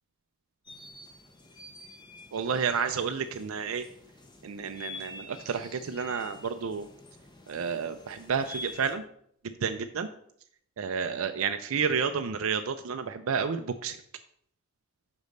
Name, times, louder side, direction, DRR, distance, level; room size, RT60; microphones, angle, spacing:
sound 1, 0.7-9.0, left 2 dB, 20° left, 0.9 m, -47 dB
voice 1, 2.3-3.8 4.4-6.9 7.5-9.0 9.4-10.1 10.8-14.0, right 6 dB, 70° right, 8 dB, 0.4 m, -30 dB
5.2 x 5.1 x 6.4 m, 0.67 s
head